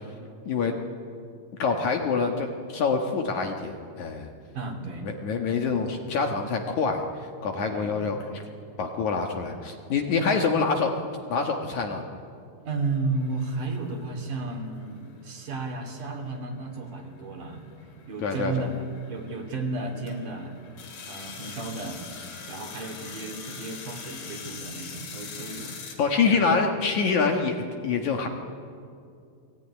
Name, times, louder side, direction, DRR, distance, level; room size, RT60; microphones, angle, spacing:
voice 1, 1.6-4.3 5.0-8.4 8.8-10.9 11.3-12.1 18.2-18.5 26.0-28.3, left 5 dB, 60° left, 3 dB, 2.5 m, -26 dB
voice 2, 4.5-5.1 5.6-5.9 7.7-8.2 10.1-10.3 12.6-17.6 18.1-20.5 21.0-22.0 22.5-25.8 26.2-26.6, right 3 dB, 55° right, 3 dB, 4.3 m, -33 dB
sound 1, 13.1-26.0, left 5 dB, 80° left, 5.0 m, -44 dB
28.5 x 19.5 x 9.9 m, 2.4 s
omnidirectional pair, 4.4 m